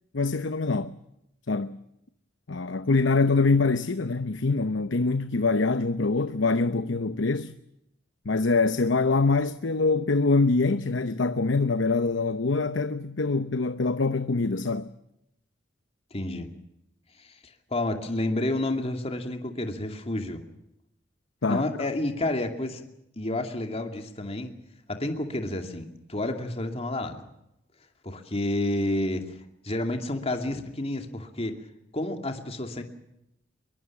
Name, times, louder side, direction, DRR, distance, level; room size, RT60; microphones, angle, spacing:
voice 1, 0.1-0.9 1.5-1.8 2.5-7.5 8.2-14.9 21.4-21.6, left 3 dB, 75° left, 0.9 m, -24 dB
voice 2, 16.1-16.5 17.2-20.4 21.5-22.8 23.2-24.5 24.9-27.2 28.0-29.4 29.6-31.5 31.9-32.8, left 1 dB, 35° left, 2.5 m, -30 dB
22.5 x 22.5 x 7.3 m
head